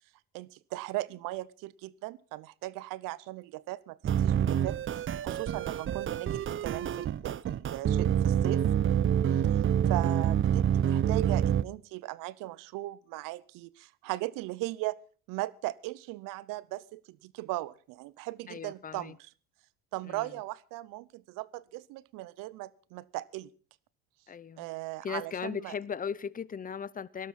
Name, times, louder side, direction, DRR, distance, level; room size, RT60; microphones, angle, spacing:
voice 1, 0.3-8.6 9.3-9.4 9.9-15.0 15.3-19.3 19.9-23.5 24.6-25.7, right 18 dB, 75° right, 0.8 m, -38 dB
sound 1, 4.0-11.6, right 9 dB, 40° right, 0.7 m, -27 dB
voice 2, 18.5-19.2 20.1-20.3 24.3-24.7 25.0-27.3, left 7 dB, 25° left, 0.7 m, -38 dB
18.0 x 12.5 x 4.2 m
supercardioid pair, 80°, 33 cm